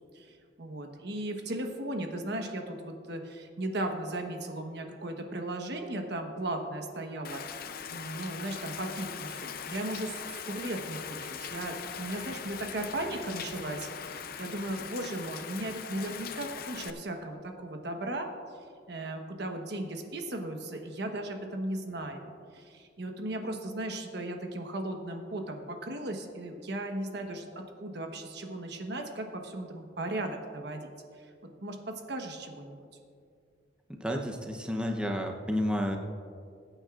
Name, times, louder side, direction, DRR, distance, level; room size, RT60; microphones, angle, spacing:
voice 1, 0.1-7.4 7.9-10.2 10.5-18.3 18.9-30.9 31.6-31.8 32.1-32.8, right 1 dB, 65° right, 4 dB, 1.1 m, -36 dB
Rain, 7.2-16.9, left 7 dB, 55° left, 0.6 m, -41 dB
voice 2, 34.0-36.0, equal, 5° right, 2 dB, 0.7 m, -31 dB
21.5 x 9.0 x 2.5 m, 2.3 s
head